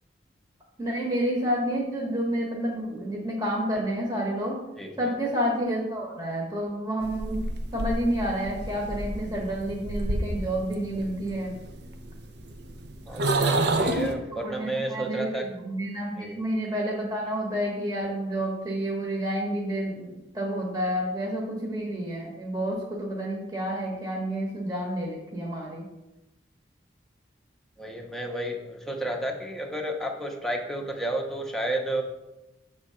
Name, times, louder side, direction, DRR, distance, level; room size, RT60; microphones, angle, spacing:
voice 1, 0.8-4.6 5.0-7.4 7.7-11.5 14.4-25.8, equal, 20° right, -2 dB, 1.1 m, -29 dB
voice 2, 4.8-5.2 13.1-15.5 16.1-16.4 27.8-32.0, right 1 dB, ahead, 1 dB, 0.7 m, -31 dB
sound 1, 7.0-14.1, right 2 dB, 60° right, 0.7 m, -30 dB
7.5 x 3.7 x 5.5 m, 0.98 s
head